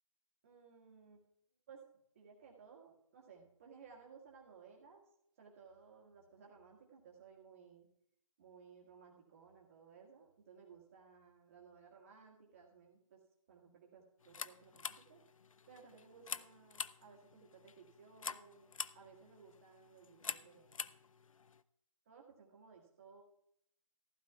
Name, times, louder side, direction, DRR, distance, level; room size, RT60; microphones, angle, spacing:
voice 1, 0.4-1.2 1.7-1.8 2.1-5.0 5.4-7.9 8.4-13.2 13.5-15.2 15.7-20.9 22.0-23.2, right 6 dB, 25° right, -1 dB, 1.6 m, -60 dB
sound 1, 14.2-21.6, left 6 dB, 70° left, 0.4 m, -47 dB
15.0 x 12.0 x 2.3 m, 0.73 s
hypercardioid pair, 165°, 18 cm